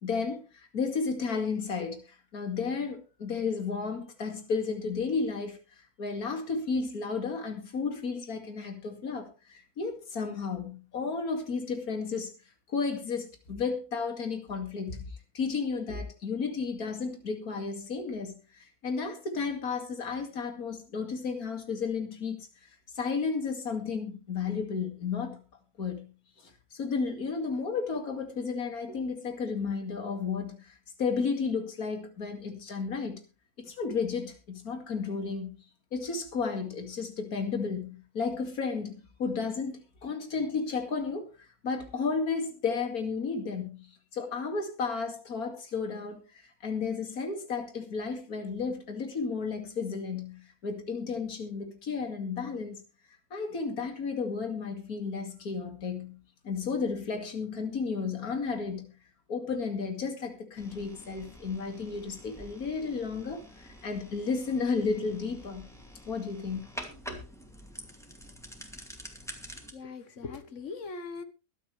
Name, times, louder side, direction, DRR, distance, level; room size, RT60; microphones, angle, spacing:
voice 1, 0.0-5.6 6.0-12.3 12.7-15.1 15.3-22.4 22.9-25.4 25.8-26.1 26.4-33.2 33.6-35.5 35.9-43.9 44.1-52.8 53.3-56.2 56.4-58.9 59.3-65.6 66.1-66.6 67.1-67.2, left 5 dB, 75° left, 2.7 m, -33 dB
sound 1, 60.6-69.7, equal, ahead, 2.4 m, -47 dB
voice 2, 69.7-71.2, left 4 dB, 55° left, 1.7 m, -40 dB
23.0 x 8.7 x 3.3 m
omnidirectional pair, 1.6 m